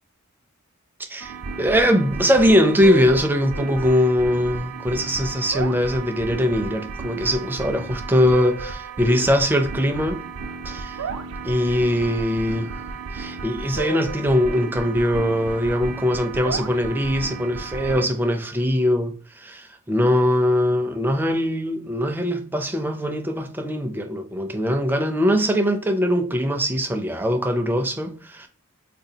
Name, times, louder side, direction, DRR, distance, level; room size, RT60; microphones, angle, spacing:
voice 1, 1.0-10.2 10.6-11.0 11.4-12.7 13.1-28.5, equal, 10° right, 0.4 m, -21 dB
sound 1, 1.2-18.0, right 4 dB, 85° right, 0.4 m, -33 dB
3.9 x 2.3 x 2.7 m
head